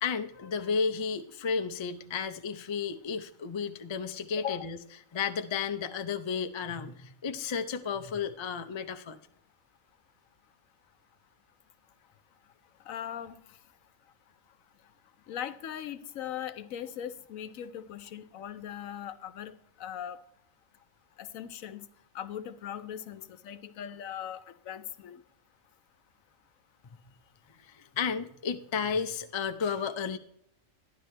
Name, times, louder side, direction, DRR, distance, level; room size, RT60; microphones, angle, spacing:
voice 1, 0.0-4.8 5.1-9.2 27.6-30.2, left 6 dB, 40° left, 8 dB, 0.4 m, -33 dB
voice 2, 12.9-13.4 15.3-20.2 21.2-21.9 22.1-25.2, left 10 dB, 80° left, 13 dB, 1.1 m, -39 dB
12.0 x 10.5 x 3.3 m, 0.72 s
omnidirectional pair, 1.4 m